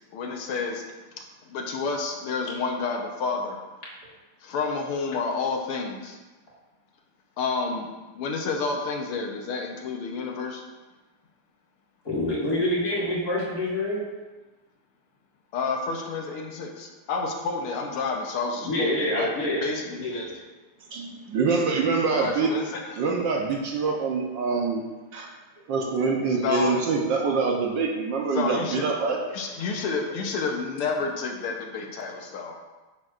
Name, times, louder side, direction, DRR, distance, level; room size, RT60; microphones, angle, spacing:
voice 1, 0.1-0.8 1.5-3.6 4.4-6.2 7.4-7.9 8.2-10.6 15.5-19.3 19.6-20.3 22.2-22.8 26.4-26.8 28.3-28.9 29.3-32.6, left 4 dB, 85° left, 2 dB, 1.9 m, -30 dB
voice 2, 12.0-14.0 18.6-19.7 20.0-20.3, left 1 dB, 45° left, -7 dB, 3.0 m, -26 dB
voice 3, 20.9-22.5 23.0-24.9 25.1-25.3 25.7-29.2, right 4 dB, 65° right, 0 dB, 1.4 m, -25 dB
10.5 x 8.1 x 2.5 m, 1.2 s
omnidirectional pair, 2.4 m